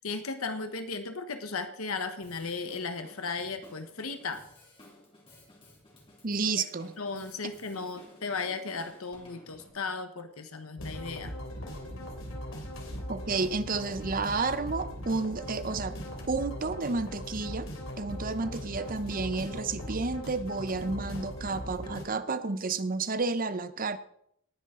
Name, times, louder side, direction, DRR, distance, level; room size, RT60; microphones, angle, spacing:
voice 1, 0.0-4.4 6.6-6.7 7.0-11.3, left 4 dB, 85° left, 1.2 m, -36 dB
Drum kit, 2.2-9.7, left 1 dB, 25° left, 3.3 m, -55 dB
voice 2, 6.2-6.9 13.1-16.0 16.3-17.7 18.0-24.0, right 3 dB, 40° right, 0.8 m, -31 dB
sound 1, 10.8-22.0, equal, 65° left, 3.0 m, -39 dB
18.5 x 9.8 x 3.8 m
head